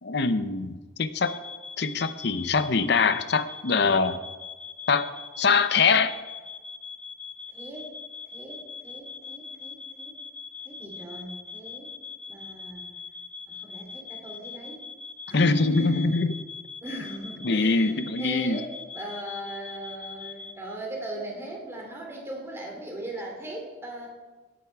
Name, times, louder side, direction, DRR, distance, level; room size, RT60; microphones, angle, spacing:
voice 1, 0.0-1.4 1.8-4.2 4.9-5.1 5.4-6.1 15.3-16.4 17.4-18.6, left 4 dB, 55° left, 0.7 m, -23 dB
sound 1, 1.2-20.5, left 5 dB, 5° left, 1.2 m, -42 dB
voice 2, 7.5-7.9 8.3-10.1 10.6-11.9 12.3-12.9 13.5-14.9 15.3-16.1 16.8-24.1, right 1 dB, 15° right, 3.1 m, -39 dB
17.0 x 8.4 x 4.7 m
head